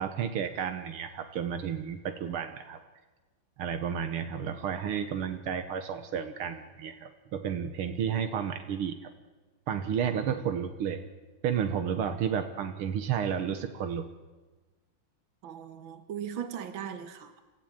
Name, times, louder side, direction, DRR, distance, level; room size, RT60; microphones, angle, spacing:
voice 1, 0.0-2.8 3.6-9.1 9.7-11.0 11.4-14.1, right 8 dB, 85° right, 8 dB, 2.1 m, -32 dB
voice 2, 15.4-17.4, right 8 dB, 65° right, 9 dB, 2.2 m, -38 dB
29.0 x 15.0 x 8.9 m, 1.3 s
omnidirectional pair, 2.3 m